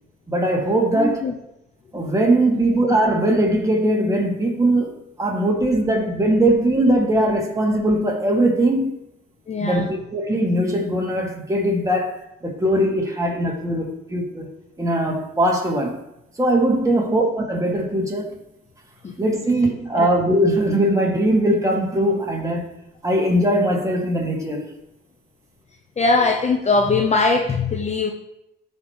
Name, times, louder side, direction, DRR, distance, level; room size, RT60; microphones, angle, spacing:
voice 1, 0.3-1.2 1.9-4.9 5.2-8.9 9.6-14.5 14.8-16.0 16.4-18.4 19.2-22.7 23.0-24.6, right 1 dB, 15° right, -1 dB, 2.3 m, -20 dB
voice 2, 0.9-1.3 9.5-9.9 16.9-17.1 19.0-19.1 19.9-20.1 26.0-28.1, left 3 dB, 35° left, 4 dB, 0.9 m, -21 dB
13.5 x 5.0 x 3.2 m, 0.83 s
cardioid pair, 90°, 20 cm